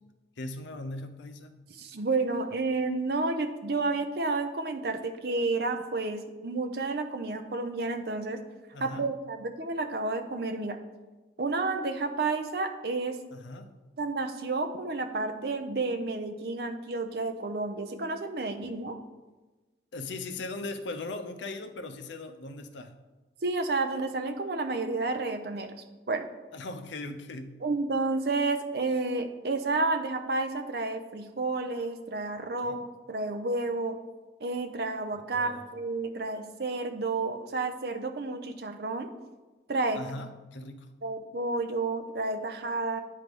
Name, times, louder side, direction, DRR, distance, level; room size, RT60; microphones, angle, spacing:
voice 1, 0.4-1.7 8.7-9.1 13.3-13.7 19.9-22.9 26.5-27.6 32.4-32.8 35.3-35.6 39.9-40.9, left 2 dB, 75° left, 9 dB, 0.6 m, -39 dB
voice 2, 1.8-8.4 8.8-10.8 11.4-13.2 14.0-19.0 23.4-25.7 26.1-26.3 27.6-34.0 34.4-39.1 39.7-40.0 41.0-43.0, right 3 dB, 55° right, 7 dB, 0.6 m, -31 dB
9.2 x 3.2 x 5.2 m, 1.2 s
head